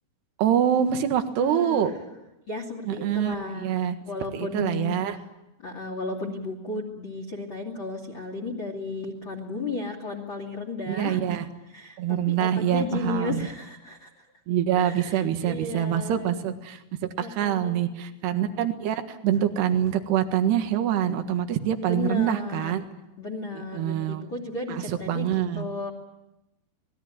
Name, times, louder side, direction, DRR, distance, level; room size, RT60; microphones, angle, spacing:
voice 1, 0.4-1.9 2.9-4.0 4.3-5.2 10.9-11.5 12.0-13.4 14.5-22.8 23.7-24.2 24.7-25.7, right 10 dB, 65° right, 7 dB, 3.5 m, -25 dB
voice 2, 1.4-1.9 2.5-3.8 4.1-5.3 5.6-11.4 11.7-14.3 14.7-16.3 17.2-17.8 21.8-22.7 23.2-25.9, left 3 dB, 30° left, 4 dB, 2.6 m, -34 dB
28.0 x 20.0 x 9.3 m, 0.95 s
omnidirectional pair, 5.5 m